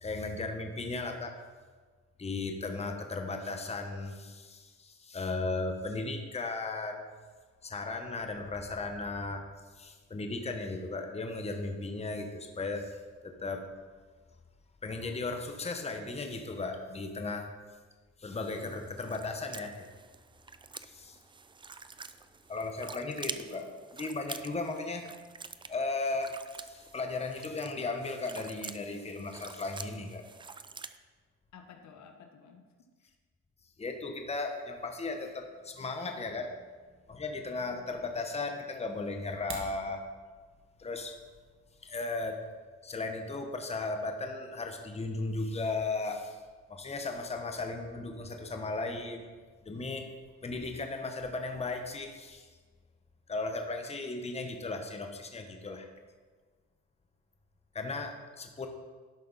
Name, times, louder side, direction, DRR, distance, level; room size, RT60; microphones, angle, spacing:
voice 1, 0.0-1.3 2.2-7.1 7.6-9.4 9.8-13.0 13.2-13.6 14.8-17.5 18.2-19.9 20.8-21.2 22.5-23.7 24.0-25.1 25.7-30.2 33.8-36.6 37.1-40.0 40.8-41.2 41.8-42.4 42.8-46.4 46.7-49.3 49.6-50.1 50.4-52.5 53.3-55.9 57.7-58.7, left 3 dB, 20° left, 4 dB, 1.0 m, -36 dB
sound 1, 18.3-31.0, right 4 dB, 15° right, 0.4 m, -47 dB
voice 2, 23.3-23.7 31.5-32.6 33.0-33.1, left 6 dB, 70° left, 5 dB, 1.1 m, -53 dB
sound 2, 39.2-39.8, right 4 dB, 45° right, 1.6 m, -42 dB
11.5 x 5.9 x 4.1 m, 1.4 s
cardioid pair, 90°, 30 cm